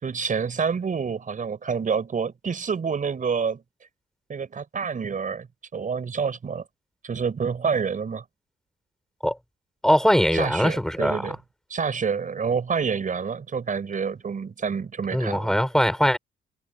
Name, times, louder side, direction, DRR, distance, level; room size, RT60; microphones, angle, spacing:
voice 1, 0.0-3.6 4.3-5.5 5.7-6.6 7.0-8.2 10.3-11.4 11.7-15.5, right 6 dB, 40° right, 5.5 m, -27 dB
voice 2, 9.8-11.4 15.1-16.2, equal, 5° left, 6.6 m, -21 dB
cardioid pair, 90°, 20 cm